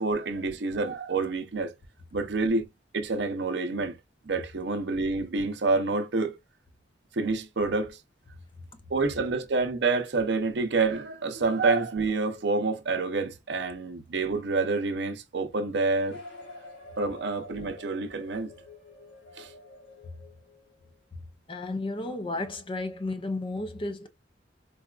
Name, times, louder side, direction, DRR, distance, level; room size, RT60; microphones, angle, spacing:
voice 1, 0.0-1.7 2.1-2.7 2.9-4.0 4.2-6.4 7.1-8.0 8.9-16.2 17.0-18.5 19.4-19.5, right 3 dB, 65° right, 0.6 m, -28 dB
sound 1, 16.1-20.9, left 2 dB, 90° left, 1.7 m, -48 dB
voice 2, 21.5-24.1, left 2 dB, 30° left, 0.5 m, -33 dB
3.9 x 2.3 x 2.3 m
head